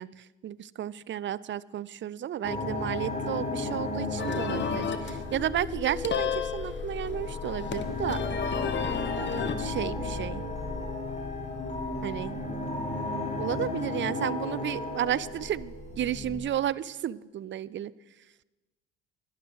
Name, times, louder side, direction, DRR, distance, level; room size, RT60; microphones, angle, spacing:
voice 1, 0.0-8.2 9.6-10.4 12.0-12.3 13.4-17.9, right 11 dB, 40° right, 20 dB, 0.5 m, -32 dB
sound 1, 2.4-16.4, left 3 dB, 20° left, 3.4 m, -34 dB
sound 2, 4.2-9.6, left 7 dB, 35° left, 1.1 m, -34 dB
11.5 x 11.5 x 4.7 m, 1.1 s
hypercardioid pair, 60°, 30 cm